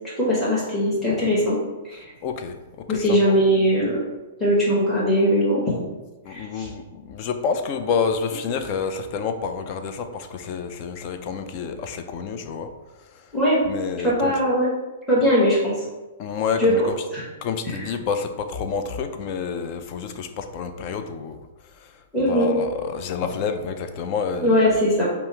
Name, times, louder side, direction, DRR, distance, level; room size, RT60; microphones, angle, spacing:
voice 1, 0.2-1.6 1.8-2.0 2.9-4.0 4.4-5.8 6.3-6.7 13.3-13.6 14.0-14.7 15.1-15.7 16.6-16.9 17.1-17.2 17.6-17.9 22.1-22.5 24.4-25.0, equal, 5° left, -9 dB, 1.3 m, -20 dB
voice 2, 2.2-3.2 6.3-12.7 13.6-14.3 16.2-16.9 17.4-21.4 21.8-21.9 22.3-24.6, left 6 dB, 40° left, 7 dB, 0.4 m, -28 dB
5.4 x 2.0 x 4.4 m, 1.2 s
hypercardioid pair, 140°, 0 cm